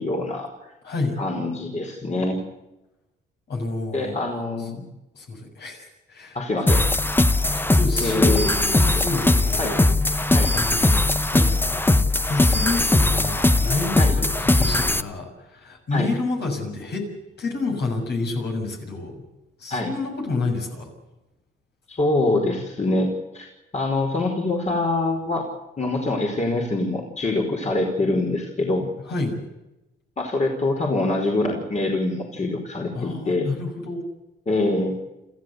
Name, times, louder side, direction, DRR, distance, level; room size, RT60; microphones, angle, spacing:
voice 1, 0.0-0.7 1.2-2.4 3.9-4.8 6.3-6.9 8.0-8.5 9.0-9.1 9.6-9.7 10.3-10.5 14.0-14.1 15.9-16.1 19.7-19.9 21.9-23.5 23.7-25.4 25.8-28.9 30.2-33.5 34.5-34.9, left 2 dB, 35° left, 0 dB, 4.8 m, -24 dB
voice 2, 0.8-1.2 3.5-4.2 5.1-6.4 7.6-9.8 10.1-11.0 11.3-11.8 12.3-17.1 17.4-19.2 19.6-20.9 29.1-29.4 32.9-34.0, left 3 dB, 60° left, 2 dB, 6.9 m, -29 dB
sound 1, 6.7-15.0, left 2 dB, 10° left, 0.9 m, -20 dB
27.0 x 15.0 x 8.1 m, 0.95 s
cardioid pair, 90°, 20 cm